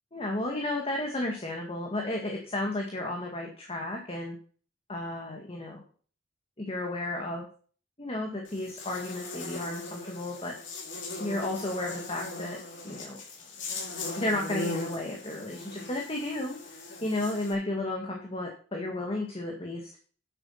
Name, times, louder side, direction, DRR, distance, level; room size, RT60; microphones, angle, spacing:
voice 1, 0.1-4.4 4.9-5.8 6.6-7.5 8.0-10.5 11.2-13.2 14.2-19.9, left 1 dB, 30° left, 1 dB, 1.9 m, -33 dB
Buzz, 8.5-17.5, left 3 dB, 75° left, 4.7 m, -39 dB
10.0 x 8.2 x 5.8 m, 0.42 s
head